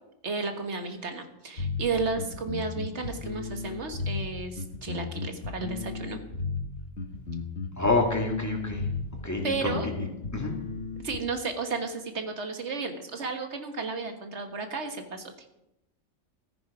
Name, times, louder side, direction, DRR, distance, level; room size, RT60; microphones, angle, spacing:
voice 1, 0.2-6.2 9.4-9.9 11.0-15.3, right 4 dB, 65° right, 6 dB, 1.7 m, -33 dB
sound 1, 1.6-11.2, left 4 dB, 65° left, 1.7 m, -34 dB
voice 2, 7.8-8.8 9.2-9.7 10.3-10.5, left 2 dB, 15° left, 1 dB, 2.1 m, -27 dB
14.5 x 9.6 x 4.9 m, 0.86 s
omnidirectional pair, 1.3 m